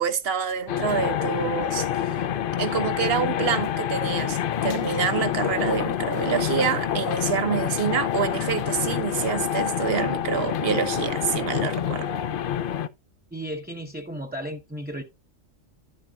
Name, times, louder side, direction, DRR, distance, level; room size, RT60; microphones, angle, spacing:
voice 1, 0.0-2.2 2.6-12.1, right 7 dB, 50° right, 1.2 m, -27 dB
sound 1, 0.7-12.9, left 9 dB, 55° left, 0.6 m, -27 dB
voice 2, 13.3-15.0, equal, 10° right, 0.8 m, -34 dB
11.5 x 7.6 x 2.4 m
omnidirectional pair, 1.3 m